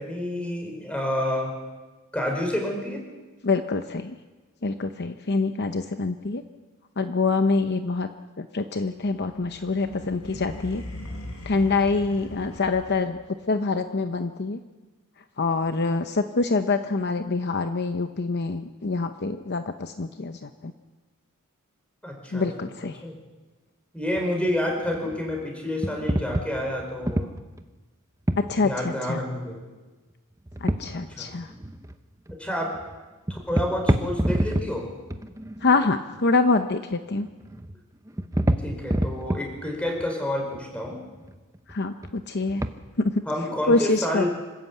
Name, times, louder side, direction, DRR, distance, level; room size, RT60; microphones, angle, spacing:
voice 1, 0.0-1.5 2.1-3.0 22.0-22.7 23.0-23.1 23.9-27.3 28.6-29.6 30.9-31.3 32.4-32.7 33.3-34.9 38.6-41.0 43.2-44.3, left 1 dB, 5° left, 1 dB, 4.8 m, -29 dB
voice 2, 3.4-4.1 4.6-6.4 7.0-8.1 8.4-10.8 11.5-13.2 13.5-14.6 15.4-20.7 22.3-23.0 28.4-29.2 30.6-31.5 35.6-37.3 41.7-42.6 43.0-43.2 43.7-44.3, left 3 dB, 50° left, 8 dB, 0.8 m, -25 dB
sound 1, 9.1-13.3, left 1 dB, 70° left, 6.0 m, -40 dB
sound 2, 24.2-24.3 24.5-25.5 25.8-27.6 28.3-28.6 30.5-31.2 31.4-31.9 32.3-32.5 32.7-33.0 33.3-34.8 35.1-35.7 37.2-37.8 38.1-40.0 40.5-41.7 42.0-42.2 42.5-42.7, right 1 dB, 15° right, 0.9 m, -27 dB
26.0 x 14.0 x 8.5 m, 1.3 s
head